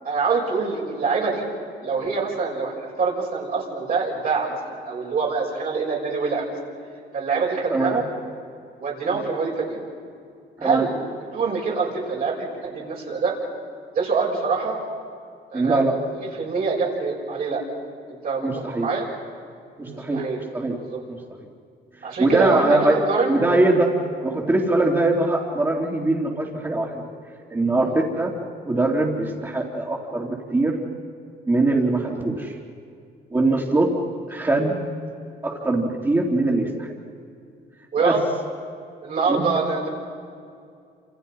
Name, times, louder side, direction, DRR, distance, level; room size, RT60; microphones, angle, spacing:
voice 1, 0.0-1.4 1.8-6.5 7.1-8.1 8.8-9.8 10.6-10.9 11.3-13.4 13.9-14.8 15.5-15.8 16.2-17.6 18.1-18.5 18.8-19.1 19.9-20.4 20.9-21.0 22.0-23.3 37.9-38.2 39.0-39.9, right 4 dB, 55° right, -3 dB, 6.4 m, -25 dB
voice 2, 7.7-8.0 9.1-9.2 10.6-10.9 15.5-15.9 18.4-18.9 19.8-20.8 22.2-23.0 23.3-23.9 24.2-27.0 27.5-28.3 28.6-30.8 31.5-32.6 33.3-33.9 34.3-34.8 35.4-36.9 38.0-38.2 39.3-39.5, right 2 dB, 20° right, -7 dB, 3.6 m, -22 dB
29.0 x 28.0 x 5.7 m, 2.4 s
cardioid pair, 120°, 18 cm